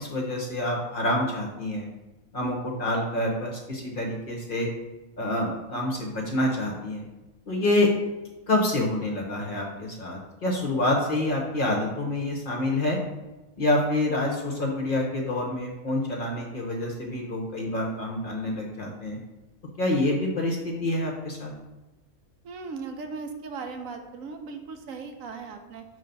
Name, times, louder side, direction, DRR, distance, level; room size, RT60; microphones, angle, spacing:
voice 1, 0.0-1.9 2.3-4.7 5.2-7.0 7.5-7.9 8.5-13.0 13.6-19.2 19.8-21.5, left 1 dB, 45° left, 0 dB, 0.9 m, -27 dB
voice 2, 22.4-25.8, right 4 dB, 75° right, 5 dB, 1.0 m, -38 dB
5.6 x 3.2 x 5.2 m, 1.1 s
omnidirectional pair, 1.5 m